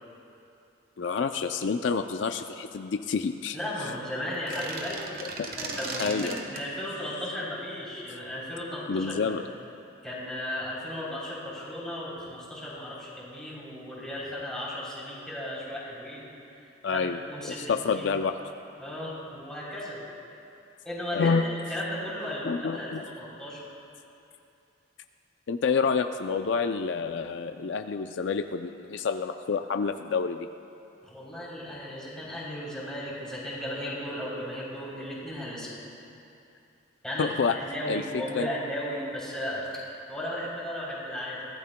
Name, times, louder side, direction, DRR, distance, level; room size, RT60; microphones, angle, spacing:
voice 1, 1.0-3.6 5.2-5.5 6.0-6.4 8.9-9.4 16.8-17.2 17.6-18.4 21.1-21.4 22.4-23.0 25.5-30.5 37.2-37.6 37.9-38.0 38.3-38.5, left 5 dB, 65° left, 7 dB, 0.4 m, -28 dB
voice 2, 3.5-9.4 10.0-16.2 16.6-18.1 18.8-20.0 20.8-23.6 31.0-35.8 37.0-41.5, left 1 dB, 5° left, -7 dB, 3.3 m, -35 dB
sound 1, 4.3-6.7, right 3 dB, 50° right, 1.3 m, -36 dB
22.5 x 16.0 x 2.2 m, 2.7 s
head